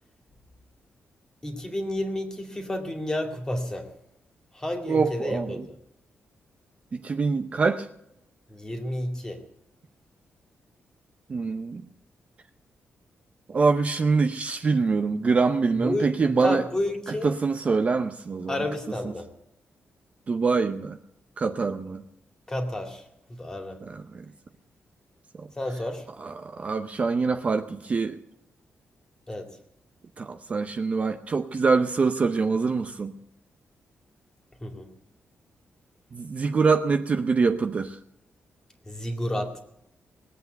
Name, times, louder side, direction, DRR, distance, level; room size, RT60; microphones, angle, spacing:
voice 1, 1.4-3.9 4.5-5.7 8.5-9.4 15.8-16.1 16.4-17.3 18.5-19.3 22.5-23.8 25.5-26.1 29.3-29.5 34.6-34.9 38.9-39.6, left 1 dB, 15° left, 2.3 m, -31 dB
voice 2, 4.9-5.7 6.9-7.9 11.3-11.8 13.5-16.6 17.2-18.6 20.3-21.0 21.4-22.0 23.8-24.3 25.4-25.5 26.2-28.2 30.2-33.2 36.1-38.0, right 4 dB, 35° right, 0.7 m, -25 dB
20.5 x 8.2 x 8.0 m
wide cardioid pair, 170°, 4 cm